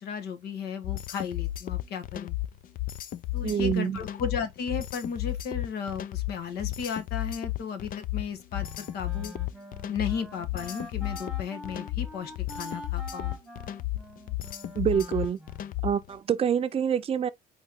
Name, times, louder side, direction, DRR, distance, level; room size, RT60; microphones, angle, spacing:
voice 1, 0.0-2.4 3.3-9.3 9.9-13.4, left 6 dB, 75° left, 1.3 m, -35 dB
sound 1, 0.8-16.1, left 15 dB, 55° left, 0.5 m, -33 dB
voice 2, 3.4-4.0 14.8-15.4 15.8-17.3, right 8 dB, 35° right, 0.6 m, -26 dB
Wind instrument woodwind instrument, 8.6-15.9, equal, ahead, 1.3 m, -45 dB
4.5 x 3.1 x 3.6 m
cardioid pair, 110°, 17 cm